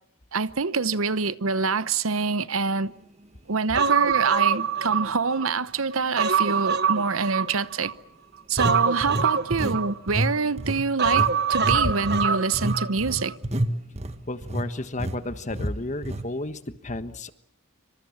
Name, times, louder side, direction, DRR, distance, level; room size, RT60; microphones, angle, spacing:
voice 1, 0.3-2.9 3.5-7.9 8.5-13.3, right 4 dB, 80° right, 1.0 m, -26 dB
Human voice, 3.7-5.5 5.9-7.9 8.6-10.3 11.0-12.9 13.2-13.3, right 6 dB, 50° right, 1.2 m, -24 dB
sound 1, 4.1-4.2 4.8-5.0 8.6-9.8 10.1-10.3 10.6-14.7 15.0-15.2 15.5-15.7 16.0-16.3, right 1 dB, 30° right, 1.6 m, -29 dB
voice 2, 14.3-17.3, left 2 dB, 35° left, 1.4 m, -32 dB
27.0 x 25.5 x 7.3 m
head